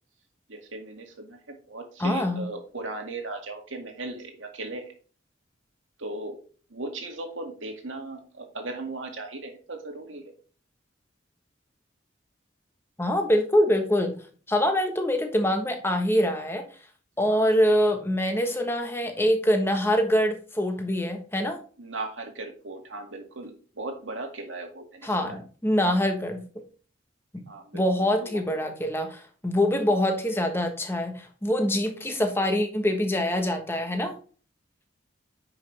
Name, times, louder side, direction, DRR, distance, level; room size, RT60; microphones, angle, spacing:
voice 1, 0.5-4.8 6.0-6.4 6.7-10.2 17.3-17.5 21.8-25.4 27.5-27.8, right 2 dB, 90° right, 3 dB, 2.1 m, -37 dB
voice 2, 2.0-2.5 13.0-14.2 14.5-16.7 17.2-21.6 25.0-26.6 27.3-27.4 27.7-34.2, equal, 10° left, 5 dB, 1.2 m, -24 dB
9.8 x 5.7 x 3.4 m, 0.40 s
head